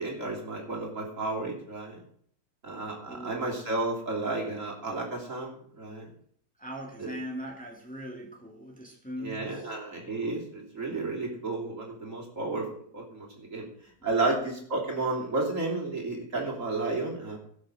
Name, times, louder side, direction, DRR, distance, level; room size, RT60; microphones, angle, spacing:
voice 1, 0.0-2.0 2.6-6.1 7.0-7.1 9.2-12.7 12.9-13.7 14.0-17.4, right 3 dB, 45° right, -1 dB, 3.4 m, -32 dB
voice 2, 3.1-3.4 6.6-9.7 14.1-14.2, equal, 5° left, -1 dB, 2.5 m, -40 dB
17.5 x 6.6 x 6.5 m, 0.63 s
omnidirectional pair, 1.8 m